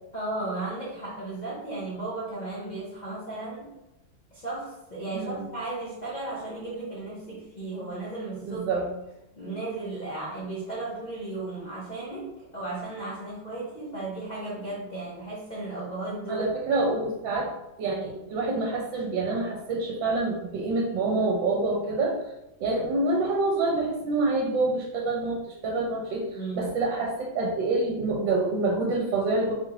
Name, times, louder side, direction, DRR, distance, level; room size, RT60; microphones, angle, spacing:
voice 1, 0.1-3.7 4.3-8.7 9.3-16.5 26.3-26.7, right 2 dB, 85° left, -7 dB, 0.4 m, -35 dB
voice 2, 5.1-5.5 8.5-8.9 16.3-17.5 17.8-22.2 22.6-29.5, right 3 dB, 80° right, -1 dB, 1.3 m, -27 dB
4.0 x 2.4 x 3.2 m, 0.95 s
omnidirectional pair, 2.1 m